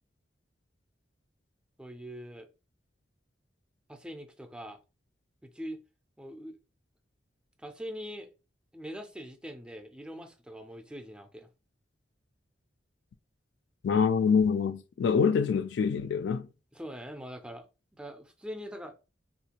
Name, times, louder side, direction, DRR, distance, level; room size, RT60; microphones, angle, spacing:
voice 1, 1.8-2.5 3.9-4.8 5.4-5.8 6.2-6.6 7.6-8.3 8.7-11.5 16.7-17.7 17.9-18.9, equal, 5° right, 0.4 m, -42 dB
voice 2, 13.8-16.5, left 6 dB, 70° left, 0.3 m, -25 dB
3.5 x 2.4 x 2.8 m
head